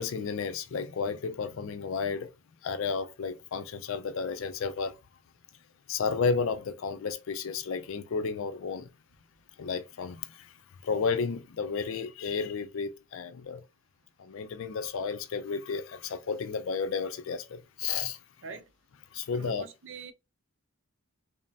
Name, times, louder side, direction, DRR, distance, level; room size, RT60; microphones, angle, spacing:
voice 1, 0.0-2.3 2.6-5.0 5.9-8.9 9.6-10.5 10.8-13.6 14.2-18.2 19.1-19.6, left 5 dB, 60° left, 0.4 m, -32 dB
voice 2, 19.3-20.1, right 4 dB, 60° right, 0.6 m, -43 dB
5.1 x 2.0 x 2.7 m
head